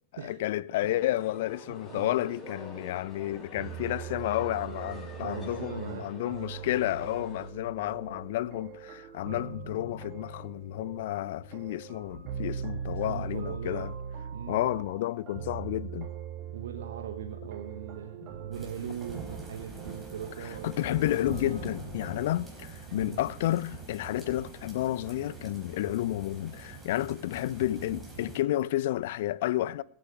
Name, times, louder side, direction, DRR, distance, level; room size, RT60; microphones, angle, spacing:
voice 1, 0.2-13.9 14.5-16.1 20.4-29.8, left 14 dB, 55° left, 0.4 m, -31 dB
sound 1, 0.8-7.5, left 2 dB, 15° left, 4.9 m, -47 dB
voice 2, 1.7-2.3 5.2-6.1 12.9-13.9 14.3-14.7 16.5-20.7 21.5-21.6 22.9-23.2, right 8 dB, 60° right, 1.1 m, -41 dB
sound 2, 3.5-22.4, right 6 dB, 35° right, 2.4 m, -41 dB
sound 3, 18.5-28.4, right 3 dB, 10° right, 4.8 m, -44 dB
22.5 x 9.0 x 3.4 m
figure-of-eight pair, 90°, 0 cm